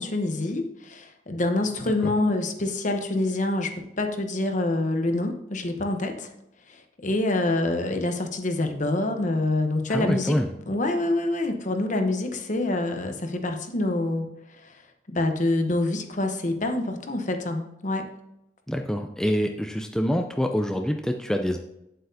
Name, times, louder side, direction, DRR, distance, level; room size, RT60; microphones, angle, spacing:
voice 1, 0.0-6.3 6.7-10.4 10.7-14.3 14.6-14.8 15.1-18.1, left 2 dB, 45° left, 5 dB, 0.9 m, -26 dB
voice 2, 9.9-10.5 18.7-21.6, equal, 5° left, 4 dB, 0.4 m, -26 dB
8.7 x 7.6 x 2.7 m, 0.86 s
head